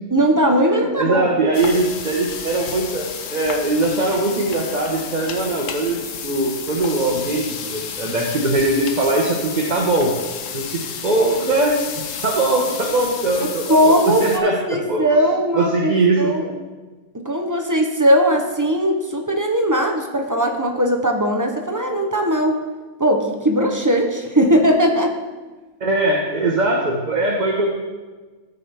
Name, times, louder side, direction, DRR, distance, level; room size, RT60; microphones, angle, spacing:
voice 1, 0.1-1.3 13.4-16.5 17.2-22.6 23.0-25.1, equal, 20° right, 3 dB, 0.6 m, -19 dB
voice 2, 0.7-10.1 10.5-14.6 14.8-15.0 15.5-16.6 25.8-27.7, right 2 dB, 35° right, -2 dB, 1.1 m, -21 dB
sound 1, 1.5-14.4, left 7 dB, 65° left, 1.0 m, -32 dB
14.0 x 5.5 x 3.5 m, 1.3 s
omnidirectional pair, 1.5 m